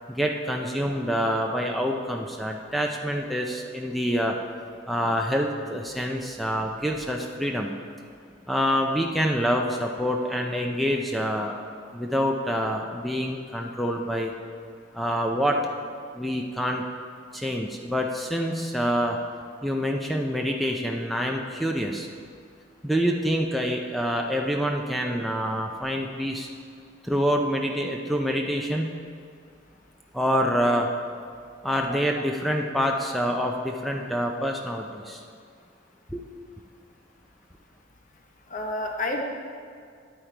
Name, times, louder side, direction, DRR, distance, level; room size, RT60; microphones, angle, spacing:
voice 1, 0.1-4.4 4.9-7.7 8.5-11.5 11.9-14.3 14.9-15.6 16.1-16.8 17.3-19.2 19.6-22.1 22.8-26.5 27.0-28.9 30.1-30.9 31.6-35.2 36.1-36.2, equal, ahead, 1 dB, 0.5 m, -26 dB
voice 2, 31.9-32.3 38.5-39.2, left 2 dB, 40° left, 2 dB, 0.9 m, -30 dB
10.5 x 8.5 x 4.5 m, 2.2 s
head